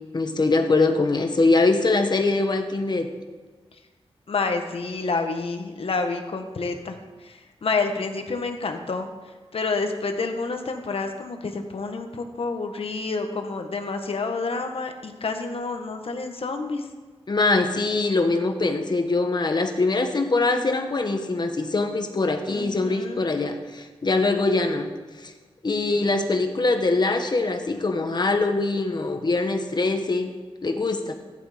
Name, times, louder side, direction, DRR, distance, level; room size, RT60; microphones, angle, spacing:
voice 1, 0.1-3.1 17.3-24.9 25.2-25.3 25.6-30.3 30.6-31.1, left 3 dB, 45° left, 6 dB, 1.5 m, -23 dB
voice 2, 4.3-9.1 9.5-16.8 22.5-23.3, left 3 dB, 65° left, 5 dB, 1.6 m, -29 dB
15.5 x 11.0 x 5.2 m, 1.4 s
wide cardioid pair, 105°, 11 cm